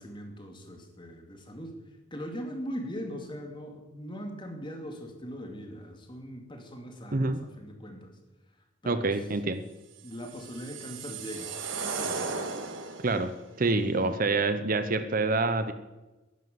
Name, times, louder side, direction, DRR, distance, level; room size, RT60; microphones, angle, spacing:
voice 1, 0.0-8.2 8.8-9.2 10.0-12.2 12.5-12.7 13.7-14.2, equal, 25° left, 4 dB, 2.5 m, -41 dB
voice 2, 8.9-9.6 13.0-13.3 13.6-15.7, right 3 dB, 45° right, 11 dB, 0.8 m, -26 dB
sound 1, 10.1-13.3, right 4 dB, 70° right, 1.8 m, -36 dB
14.5 x 11.0 x 7.9 m, 1.1 s
head